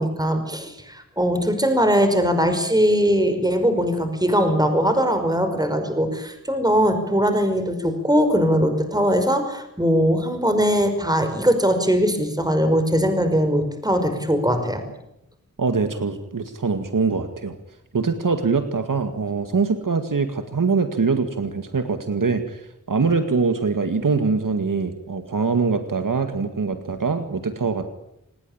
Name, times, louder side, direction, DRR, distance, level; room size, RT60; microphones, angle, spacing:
voice 1, 0.0-14.8, equal, 10° right, 7 dB, 5.5 m, -20 dB
voice 2, 15.6-17.6 17.9-27.9, right 4 dB, 85° right, 8 dB, 2.1 m, -23 dB
28.0 x 20.0 x 8.9 m, 0.79 s
wide cardioid pair, 75°, 32 cm